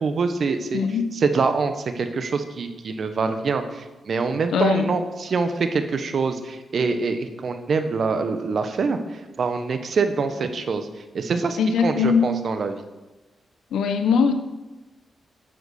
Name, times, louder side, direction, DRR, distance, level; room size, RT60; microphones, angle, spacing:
voice 1, 0.0-0.8 1.1-10.9 11.1-12.8, right 4 dB, 65° right, 8 dB, 1.2 m, -25 dB
voice 2, 0.7-1.1 4.5-4.9 11.6-12.3 13.7-14.3, left 6 dB, 80° left, 8 dB, 1.0 m, -20 dB
9.3 x 8.2 x 6.6 m, 1.1 s
supercardioid pair, 40°, 0 cm